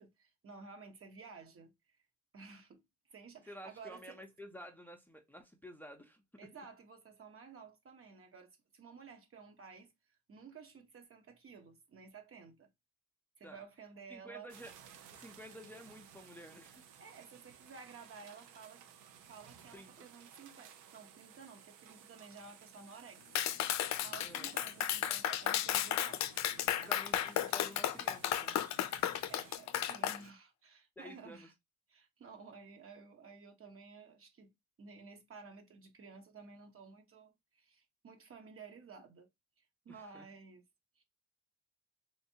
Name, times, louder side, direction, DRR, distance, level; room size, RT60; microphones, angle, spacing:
voice 1, 0.0-2.0 2.3-2.8 3.1-4.2 6.4-12.7 13.4-14.5 17.0-18.8 19.2-23.6 24.0-27.0 29.3-31.5 31.9-34.5 34.8-39.3 39.6-40.6 41.0-41.1, right 5 dB, 45° right, 1.1 m, -54 dB
voice 2, 3.5-6.2 13.4-13.6 14.1-14.7 15.1-16.8 19.7-20.1 24.2-24.5 26.9-28.6 31.0-31.5 39.9-40.3, equal, 5° left, 0.6 m, -52 dB
sound 1, 14.5-29.6, right 8 dB, 90° right, 0.7 m, -58 dB
Clapping, 23.3-30.2, left 11 dB, 65° left, 0.4 m, -34 dB
3.2 x 2.6 x 2.7 m
cardioid pair, 90°, 30 cm